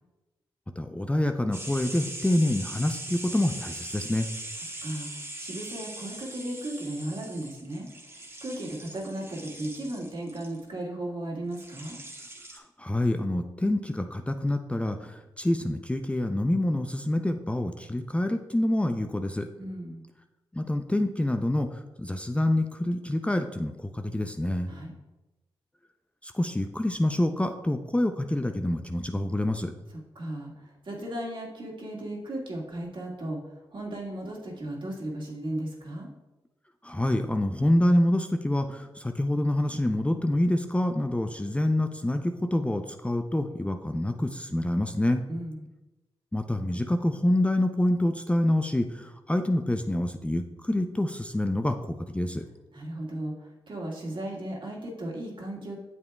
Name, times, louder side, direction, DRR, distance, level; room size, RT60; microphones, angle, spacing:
voice 1, 0.8-4.3 12.5-19.5 20.5-24.7 26.2-29.7 36.8-45.2 46.3-52.5, left 1 dB, 10° left, 6 dB, 0.5 m, -27 dB
sound 1, 1.5-10.6 11.5-12.6, right 1 dB, 25° right, 1.5 m, -41 dB
voice 2, 4.8-12.0 19.6-20.0 24.7-24.9 30.2-36.1 45.3-45.7 52.7-55.8, right 1 dB, 55° right, -1 dB, 2.0 m, -36 dB
8.2 x 7.0 x 2.3 m, 1.1 s
supercardioid pair, 45°, 10 cm